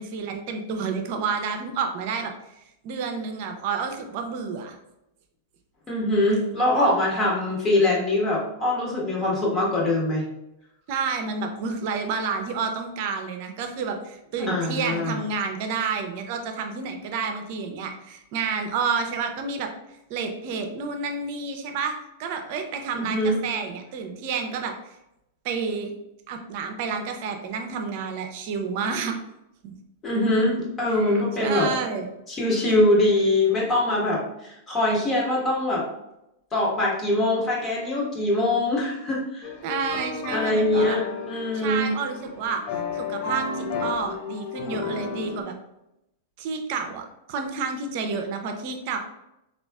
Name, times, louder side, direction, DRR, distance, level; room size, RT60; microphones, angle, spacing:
voice 1, 0.0-2.3 2.8-4.8 10.9-19.7 20.1-21.9 22.2-25.0 25.4-25.9 26.3-29.2 29.6-29.7 30.9-32.1 39.6-41.0 41.5-42.6 42.9-45.5 46.4-49.0, right 5 dB, 55° right, 5 dB, 0.6 m, -30 dB
voice 2, 5.9-10.3 14.4-15.2 22.9-23.4 30.0-31.7 32.3-35.8 36.5-39.5 40.3-41.9, left 1 dB, 25° left, -4 dB, 1.3 m, -23 dB
sound 1, 39.4-45.4, left 6 dB, 50° left, 0.6 m, -33 dB
4.0 x 2.4 x 2.3 m, 0.87 s
hypercardioid pair, 110°, 0 cm